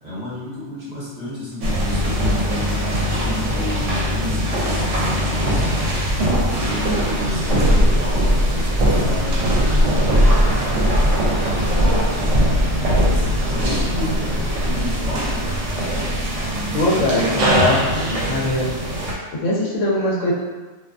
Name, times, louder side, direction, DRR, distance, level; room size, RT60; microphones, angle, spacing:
voice 1, 0.0-6.0 6.5-12.1 12.5-15.4, equal, 40° right, -10 dB, 1.0 m, -31 dB
sound 1, 1.6-19.1, equal, 75° right, 0.9 m, -21 dB
sound 2, 7.5-16.7, left 1 dB, 60° right, 0.5 m, -25 dB
voice 2, 16.7-17.8 18.1-18.7 19.3-20.3, left 2 dB, 80° left, -4 dB, 1.0 m, -21 dB
2.5 x 2.4 x 2.3 m, 1.3 s
omnidirectional pair, 1.3 m